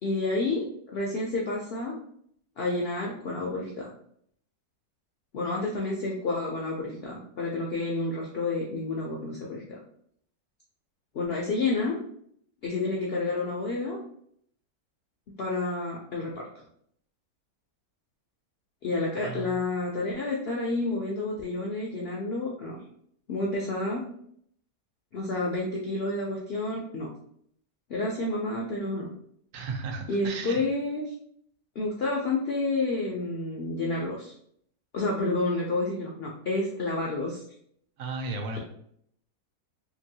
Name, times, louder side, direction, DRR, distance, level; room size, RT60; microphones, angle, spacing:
voice 1, 0.0-0.7 0.9-2.0 2.6-3.9 5.3-9.6 11.1-12.0 12.6-14.0 15.4-16.5 18.8-22.8 23.3-24.0 25.1-27.1 27.9-29.1 30.1-31.1 31.8-34.3 34.9-37.4, left 2 dB, 70° left, -2 dB, 0.5 m, -29 dB
voice 2, 19.2-19.6 29.5-30.6 38.0-38.6, right 3 dB, 75° right, 3 dB, 1.1 m, -35 dB
2.9 x 2.6 x 2.7 m, 0.66 s
omnidirectional pair, 1.6 m